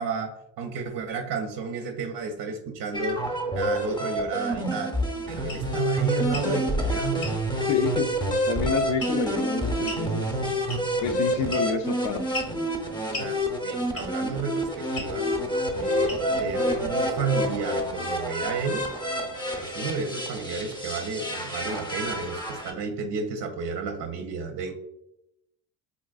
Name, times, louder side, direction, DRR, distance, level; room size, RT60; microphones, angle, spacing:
voice 1, 0.0-3.2 3.5-5.0 5.3-7.3 13.2-15.3 15.8-18.9 19.6-24.7, right 5 dB, 50° right, 4 dB, 0.5 m, -32 dB
sound 1, 2.9-22.7, equal, 10° left, 0.7 m, -28 dB
sound 2, 5.5-5.7 6.2-6.5 7.2-7.4 9.0-9.3 9.8-10.1 10.7-11.0 11.5-11.9 12.3-12.6 13.1-13.3 13.9-14.2 14.9-15.1 16.1-16.4, left 2 dB, 50° left, 1.0 m, -35 dB
voice 2, 7.7-8.1 8.5-10.4 11.0-12.4, left 5 dB, 70° left, 8 dB, 0.6 m, -28 dB
3.8 x 2.4 x 2.3 m, 0.81 s
supercardioid pair, 85°, 45 cm